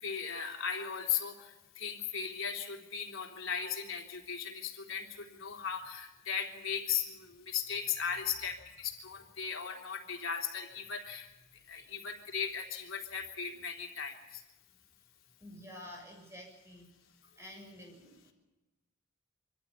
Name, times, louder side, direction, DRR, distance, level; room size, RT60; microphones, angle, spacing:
voice 1, 0.0-11.3 11.7-14.4, left 7 dB, 90° left, 2 dB, 3.5 m, -37 dB
voice 2, 11.5-12.0 15.4-16.9 17.4-18.3, left 1 dB, 15° right, 1 dB, 7.2 m, -50 dB
25.0 x 15.0 x 8.5 m, 1.0 s
head